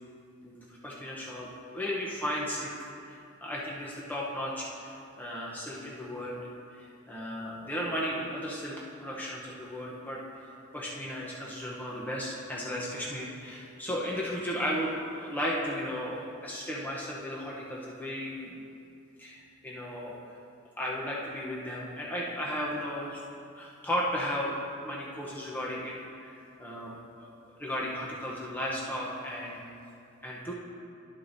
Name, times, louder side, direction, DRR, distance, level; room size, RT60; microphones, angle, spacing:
voice 1, 0.4-2.7 3.1-6.5 6.8-10.2 10.7-18.7 19.2-20.2 20.8-23.2 23.5-27.3 27.6-29.6 30.2-30.5, equal, 10° left, -5 dB, 0.8 m, -35 dB
12.0 x 7.4 x 2.6 m, 2.6 s
head